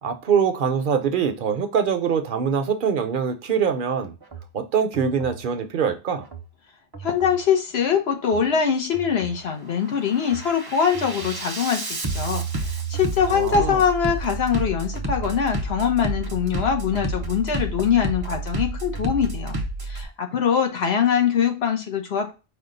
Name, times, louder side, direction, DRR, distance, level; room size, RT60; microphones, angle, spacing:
voice 1, 0.0-4.1 4.5-6.2 13.3-13.8, right 7 dB, 60° right, 0.7 m, -23 dB
Bass drum, 4.2-4.5 4.9-5.4 6.2-6.5 6.9-7.4 8.2-8.5 8.9-9.4 9.8-20.1, right 2 dB, 25° right, 0.6 m, -30 dB
voice 2, 7.0-22.3, left 7 dB, 75° left, 1.2 m, -23 dB
5.0 x 2.3 x 3.8 m
omnidirectional pair, 1.1 m